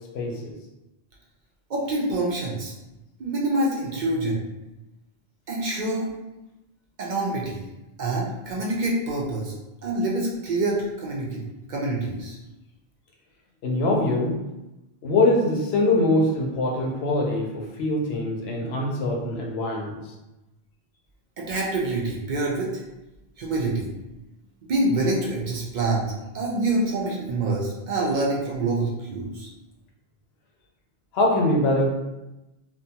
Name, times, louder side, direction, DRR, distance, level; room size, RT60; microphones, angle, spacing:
voice 1, 0.1-0.5 13.6-14.4 15.0-20.0 31.1-31.9, left 2 dB, 85° left, 0 dB, 0.8 m, -23 dB
voice 2, 1.7-2.7 3.2-4.4 5.5-6.1 7.0-7.6 8.0-9.5 9.8-11.4 11.7-12.4 21.4-22.7 23.4-23.9 24.7-29.5, right 2 dB, 55° right, -3 dB, 0.6 m, -26 dB
2.6 x 2.1 x 2.7 m, 0.99 s
omnidirectional pair, 1.0 m